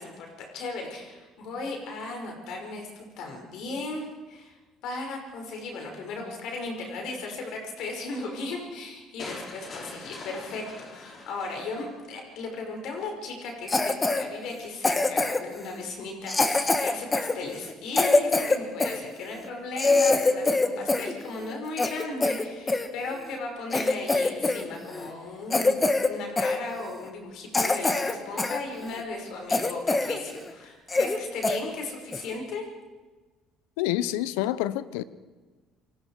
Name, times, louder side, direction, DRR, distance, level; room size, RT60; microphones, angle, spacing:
voice 1, 0.0-4.6 4.8-32.6, left 3 dB, 70° left, 5.7 m, -36 dB
sound 1, 9.2-12.2, left 3 dB, 45° left, 5.3 m, -43 dB
Cough, 13.7-14.2 14.8-15.5 16.3-19.0 19.4-19.5 19.8-21.1 21.4-22.9 23.3-23.4 23.7-24.6 24.9-25.1 25.5-26.1 26.4-26.6 27.1-27.2 27.5-28.6 29.0-29.1 29.5-30.2 30.5-30.6 30.9-31.2 31.4-31.6 32.1-32.3, left 3 dB, 20° left, 1.9 m, -24 dB
voice 2, 33.8-35.0, left 14 dB, 85° left, 0.8 m, -27 dB
28.0 x 19.5 x 4.9 m
supercardioid pair, 75°, 0 cm